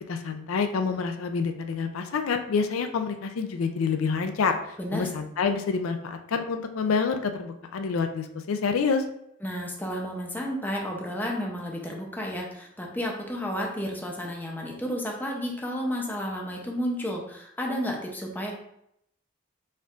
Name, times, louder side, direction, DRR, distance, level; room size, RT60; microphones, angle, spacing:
voice 1, 0.1-9.0, left 5 dB, 85° left, 7 dB, 0.4 m, -27 dB
voice 2, 9.4-18.5, equal, 10° left, -1 dB, 0.6 m, -32 dB
4.3 x 3.7 x 2.4 m, 0.76 s
head